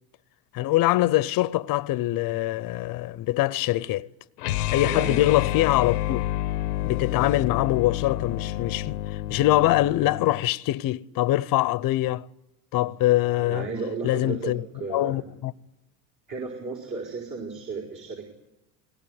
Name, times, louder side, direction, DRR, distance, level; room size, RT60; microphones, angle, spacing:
voice 1, 0.5-4.1 4.7-6.2 6.8-12.3 12.7-13.7 14.0-14.6 14.9-15.5, left 16 dB, 45° left, 0.7 m, -23 dB
sound 1, 4.4-10.5, left 15 dB, 90° left, 0.8 m, -29 dB
voice 2, 4.8-5.3 13.3-15.3 16.3-18.3, right 4 dB, 50° right, 5.1 m, -34 dB
20.5 x 18.0 x 9.9 m
hypercardioid pair, 85°, 46 cm